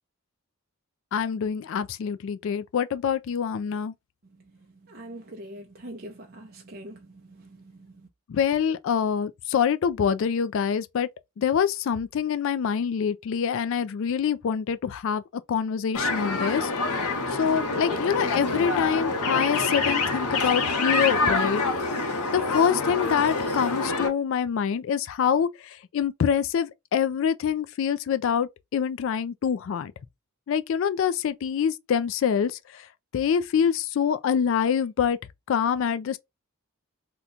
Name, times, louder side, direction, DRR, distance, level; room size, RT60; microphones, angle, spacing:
voice 1, 1.1-3.9 8.3-11.1 11.4-15.2 15.5-16.7 17.4-21.6 22.3-25.5 25.9-29.9 30.5-32.5 33.1-35.2 35.5-36.2, left 7 dB, 60° left, 0.3 m, -25 dB
voice 2, 4.9-8.0, right 1 dB, 45° right, 0.6 m, -43 dB
sound 1, 15.9-24.1, left 3 dB, 85° left, 1.0 m, -26 dB
2.9 x 2.2 x 3.7 m
head